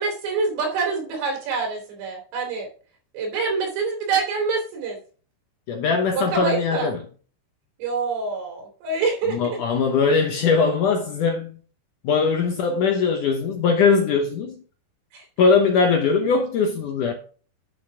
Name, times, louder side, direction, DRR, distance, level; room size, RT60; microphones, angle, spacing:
voice 1, 0.0-2.7 3.1-5.0 6.1-6.9 7.8-9.6 15.1-15.3, right 4 dB, 85° right, 5.7 m, -26 dB
voice 2, 5.7-7.0 9.3-11.6 12.0-14.6 15.4-17.1, left 5 dB, 70° left, 2.0 m, -20 dB
11.0 x 7.0 x 3.5 m
omnidirectional pair, 4.9 m